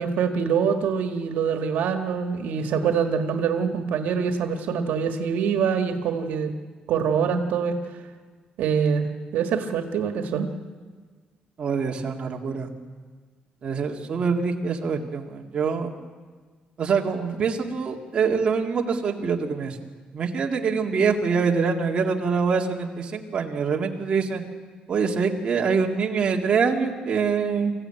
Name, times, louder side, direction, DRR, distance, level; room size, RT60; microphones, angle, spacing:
voice 1, 0.0-6.5 6.9-7.8 8.6-10.5, right 6 dB, 85° right, 6 dB, 1.6 m, -24 dB
voice 2, 11.6-12.7 13.6-15.9 16.8-19.8 20.1-24.4 24.9-27.7, right 5 dB, 35° right, 0 dB, 2.1 m, -24 dB
25.5 x 15.0 x 9.0 m, 1.5 s
cardioid pair, 155°, 3 cm